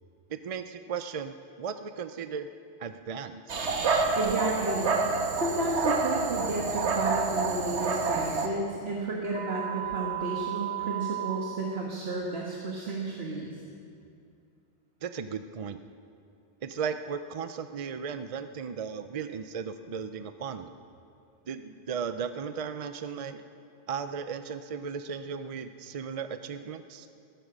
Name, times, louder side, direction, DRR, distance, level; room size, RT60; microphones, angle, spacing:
voice 1, 0.3-2.5 2.8-3.6 15.0-15.8 16.6-20.7 21.5-23.4 23.9-27.1, right 6 dB, 50° right, 10 dB, 0.4 m, -36 dB
Dog, 3.5-8.5, right 4 dB, 85° right, 1.4 m, -28 dB
voice 2, 4.2-13.5, right 2 dB, 65° right, -3 dB, 1.7 m, -32 dB
sound 1, 9.3-11.4, right 17 dB, 45° left, 2.8 m, -34 dB
15.5 x 13.5 x 6.2 m, 2.5 s
omnidirectional pair, 1.1 m